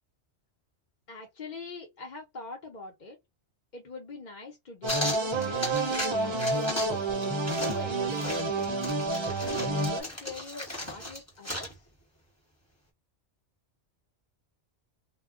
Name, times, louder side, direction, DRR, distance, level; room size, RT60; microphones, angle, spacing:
voice 1, 1.1-3.2 3.7-7.2 7.6-8.9 9.3-11.9, left 2 dB, 45° left, 0.8 m, -43 dB
sound 1, 4.8-10.0, right 2 dB, 30° right, 0.6 m, -29 dB
sound 2, 4.9-6.1 6.4-7.0 7.2-11.8, left 1 dB, 15° left, 1.1 m, -36 dB
2.3 x 2.1 x 3.6 m
omnidirectional pair, 1.2 m